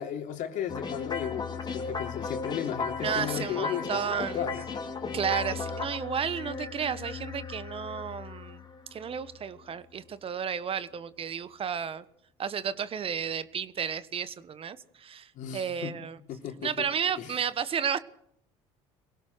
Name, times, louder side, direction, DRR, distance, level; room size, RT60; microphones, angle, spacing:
voice 1, 0.0-4.7 15.4-16.0 16.3-16.9 17.2-17.3, left 10 dB, 65° left, 4 dB, 3.5 m, -35 dB
sound 1, 0.7-9.9, left 4 dB, 30° left, 3.4 m, -36 dB
voice 2, 3.0-4.4 5.1-8.6 8.9-12.0 12.4-16.2 16.6-18.0, right 7 dB, 40° right, 15 dB, 1.3 m, -32 dB
24.0 x 17.5 x 6.4 m, 0.70 s
supercardioid pair, 85°, 14 cm